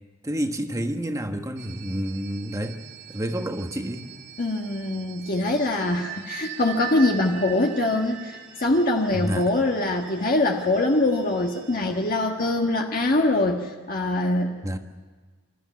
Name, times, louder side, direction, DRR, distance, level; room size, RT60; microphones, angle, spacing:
voice 1, 0.2-2.8 3.1-4.1 9.1-9.5 14.6-14.8, equal, 15° right, 6 dB, 1.3 m, -29 dB
sound 1, 1.6-12.1, right 10 dB, 55° right, 3.0 m, -42 dB
voice 2, 4.4-14.6, left 2 dB, 45° left, 1 dB, 1.5 m, -23 dB
26.5 x 13.5 x 9.3 m, 1.4 s
head